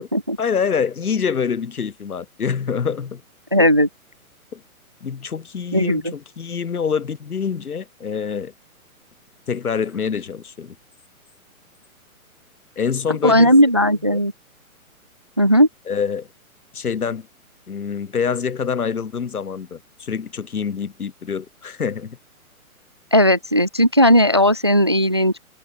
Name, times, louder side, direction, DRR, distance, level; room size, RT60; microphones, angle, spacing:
voice 1, 0.4-3.2 3.6-3.7 4.5-4.6 5.0-8.5 9.5-10.8 12.8-13.5 14.1-14.2 15.9-16.3 16.7-17.3 17.7-22.2, left 6 dB, 85° left, 3.5 m, -26 dB
voice 2, 3.5-3.9 5.7-6.1 13.2-14.3 15.4-15.7 23.1-25.4, equal, 20° right, 0.4 m, -16 dB
hypercardioid pair, 155°, 43 cm